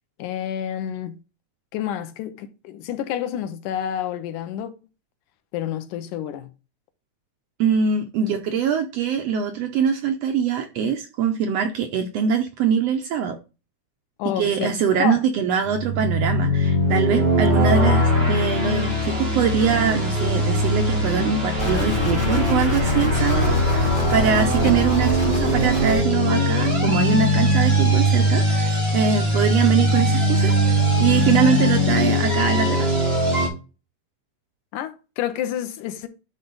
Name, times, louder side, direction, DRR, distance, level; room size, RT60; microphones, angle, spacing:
voice 1, 0.2-1.2 1.7-4.7 5.5-6.5 8.2-8.3 14.2-15.2 24.6-24.8 34.7-36.1, left 10 dB, 85° left, 2.3 m, -29 dB
voice 2, 7.6-13.4 14.4-32.9, right 7 dB, 75° right, 1.5 m, -23 dB
sound 1, 15.6-33.5, equal, 40° right, 2.9 m, -21 dB
sound 2, 21.6-26.0, right 2 dB, 10° left, 1.6 m, -26 dB
11.0 x 3.9 x 3.9 m
omnidirectional pair, 3.5 m